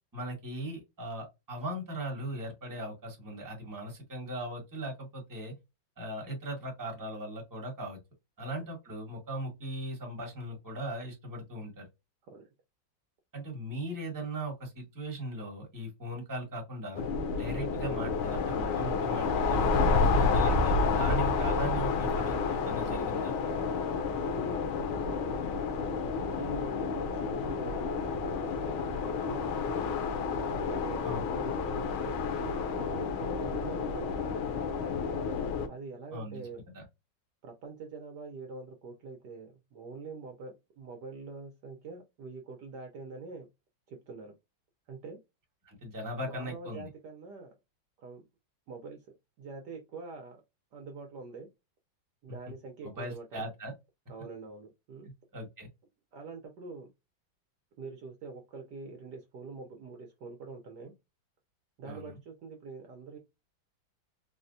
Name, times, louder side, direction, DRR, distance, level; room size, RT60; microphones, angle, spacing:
voice 1, 0.1-5.5 6.0-8.0 8.4-11.9 13.3-17.0 17.4-22.4 22.6-23.3 31.0-31.3 36.1-36.5 36.7-36.8 45.6-46.9 52.8-53.7 55.3-55.7 61.9-62.1, right 1 dB, 10° right, 1.0 m, -38 dB
sound 1, 16.9-35.7, left 4 dB, 85° left, 1.5 m, -30 dB
voice 2, 24.1-25.3 26.3-28.8 29.2-30.0 30.6-32.2 32.7-34.4 35.7-36.6 37.4-43.5 43.9-44.3 44.9-45.2 46.2-47.5 48.0-48.2 48.7-49.0 49.4-50.4 50.7-51.5 52.2-53.5 54.1-55.1 56.1-56.9 57.8-60.9 61.8-63.2, right 4 dB, 65° right, 1.2 m, -45 dB
4.2 x 2.2 x 2.6 m
omnidirectional pair, 2.2 m